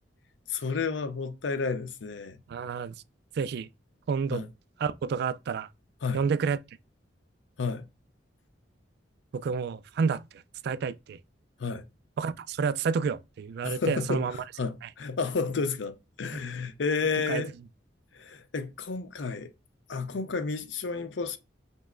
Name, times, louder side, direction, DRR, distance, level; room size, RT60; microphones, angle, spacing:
voice 1, 0.5-2.4 4.3-4.5 6.0-6.2 7.6-7.8 11.6-11.8 13.6-14.2 14.6-17.5 18.1-19.5 19.9-21.4, left 4 dB, 75° left, 0.6 m, -31 dB
voice 2, 2.5-2.9 3.4-3.7 4.1-4.4 4.8-5.7 6.1-6.6 9.3-10.2 10.6-11.2 12.2-14.4 17.3-17.4, right 5 dB, 60° right, 0.3 m, -29 dB
5.4 x 3.1 x 2.4 m
head